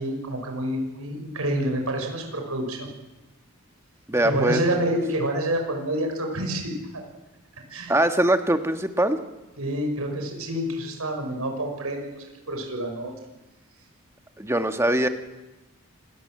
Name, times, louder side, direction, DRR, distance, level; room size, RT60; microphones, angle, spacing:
voice 1, 0.0-2.9 4.2-7.0 7.7-7.9 9.6-12.2 12.5-13.1, right 1 dB, 90° right, 3 dB, 5.9 m, -28 dB
voice 2, 4.1-4.8 7.9-9.2 14.4-15.1, right 1 dB, 10° right, 7 dB, 1.5 m, -22 dB
28.0 x 21.0 x 7.7 m, 1.0 s
head